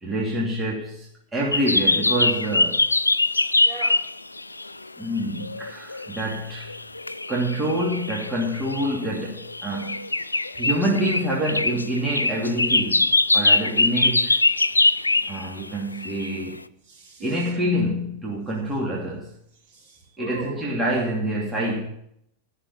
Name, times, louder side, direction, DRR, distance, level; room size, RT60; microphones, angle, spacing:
voice 1, 0.0-2.8 5.0-6.7 7.3-14.4 15.3-16.6 17.2-19.3 20.2-21.9, equal, 15° right, -4 dB, 2.7 m, -27 dB
sound 1, 1.5-4.8 5.2-15.6 16.0-16.4, left 2 dB, 80° left, 0.4 m, -23 dB
voice 2, 3.4-4.0 16.9-17.5 19.7-20.6, right 2 dB, 45° right, -3 dB, 4.7 m, -38 dB
13.5 x 6.4 x 8.4 m, 0.71 s
figure-of-eight pair, 90°, 0 cm